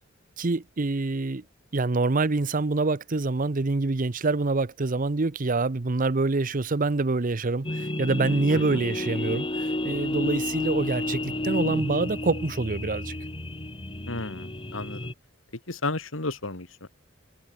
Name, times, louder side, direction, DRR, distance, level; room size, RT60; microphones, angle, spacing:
voice 1, 0.4-1.4 1.7-13.1, right 3 dB, 45° right, 0.8 m, -26 dB
sound 1, 7.6-15.1, left 1 dB, 25° left, 2.6 m, -31 dB
voice 2, 14.1-15.1 15.7-16.9, left 2 dB, 85° left, 3.0 m, -33 dB
head